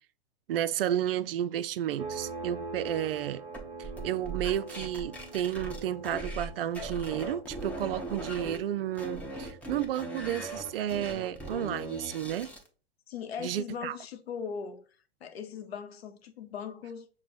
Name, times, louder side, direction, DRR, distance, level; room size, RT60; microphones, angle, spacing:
voice 1, 0.5-3.4 3.8-12.5 13.4-14.0, right 11 dB, 60° right, 0.4 m, -32 dB
sound 1, 2.0-12.3, right 3 dB, 20° right, 1.1 m, -44 dB
sound 2, 3.5-6.5 6.8-8.6 9.0-12.7, right 2 dB, 5° left, 0.8 m, -39 dB
voice 2, 13.1-14.8 15.2-17.1, left 7 dB, 70° left, 0.8 m, -39 dB
5.9 x 2.1 x 4.1 m
figure-of-eight pair, 105°, 32 cm